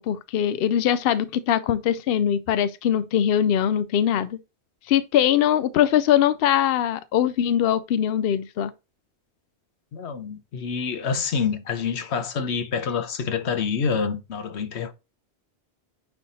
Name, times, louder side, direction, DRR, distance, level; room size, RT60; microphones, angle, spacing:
voice 1, 0.0-4.4 4.9-8.7, left 10 dB, 65° left, 0.7 m, -22 dB
voice 2, 9.9-14.9, left 6 dB, 85° left, 1.1 m, -27 dB
9.3 x 3.4 x 4.1 m
omnidirectional pair, 1.1 m